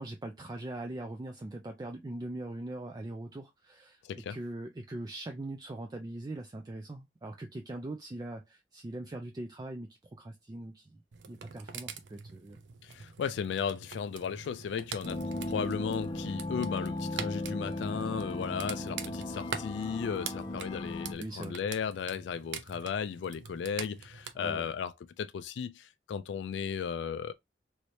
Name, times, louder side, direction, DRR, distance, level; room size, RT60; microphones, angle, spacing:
voice 1, 0.0-11.0 11.3-12.6 21.2-21.6 24.4-24.7, right 2 dB, 25° right, 0.4 m, -41 dB
voice 2, 4.0-4.4 12.8-27.3, left 7 dB, 85° left, 0.3 m, -35 dB
sound 1, 11.1-24.3, right 6 dB, 90° right, 0.5 m, -44 dB
sound 2, 15.0-21.1, left 1 dB, 25° left, 0.5 m, -36 dB
3.2 x 3.1 x 2.6 m
head